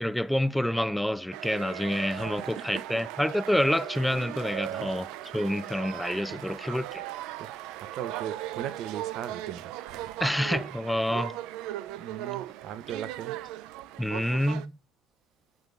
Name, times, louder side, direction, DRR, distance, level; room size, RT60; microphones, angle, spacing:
voice 1, 0.0-5.1 5.3-7.0 10.2-11.4 14.0-14.7, left 1 dB, 5° left, 0.4 m, -28 dB
sound 1, 1.3-14.7, right 14 dB, 80° right, 0.5 m, -38 dB
voice 2, 2.1-2.9 4.7-4.9 6.3-6.4 7.4-10.2 12.0-13.4, right 10 dB, 60° right, 0.9 m, -39 dB
8.7 x 6.2 x 2.6 m
cardioid pair, 125°, 0 cm